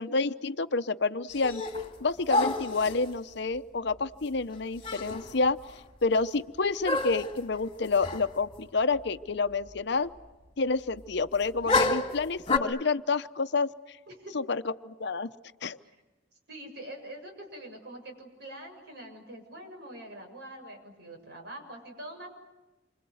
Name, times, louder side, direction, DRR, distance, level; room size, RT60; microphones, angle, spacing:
voice 1, 0.0-1.6 2.0-5.6 6.0-10.1 10.6-14.0 14.3-15.3 15.6-15.8, left 4 dB, 65° left, 11 dB, 0.8 m, -29 dB
sound 1, 1.3-1.9 2.3-3.1 4.5-4.6 4.8-5.3 5.7-5.8 6.8-7.4 8.0-8.3 8.5-8.6 11.7-12.6, left 3 dB, 30° left, 2.2 m, -28 dB
voice 2, 14.1-14.4 15.8-15.9 16.5-22.3, right 1 dB, 60° right, 3 dB, 7.3 m, -44 dB
28.5 x 25.5 x 7.9 m, 1.1 s
head